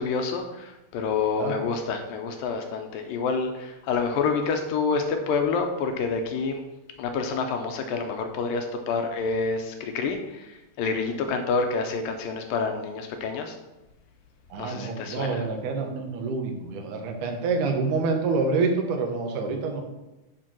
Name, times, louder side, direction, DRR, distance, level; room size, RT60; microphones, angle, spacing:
voice 1, 0.0-6.6 7.0-13.6 14.6-15.4, left 4 dB, 75° left, 5 dB, 2.2 m, -28 dB
voice 2, 14.5-19.8, right 4 dB, 65° right, 3 dB, 2.3 m, -27 dB
9.0 x 4.5 x 6.1 m, 1.0 s
omnidirectional pair, 4.5 m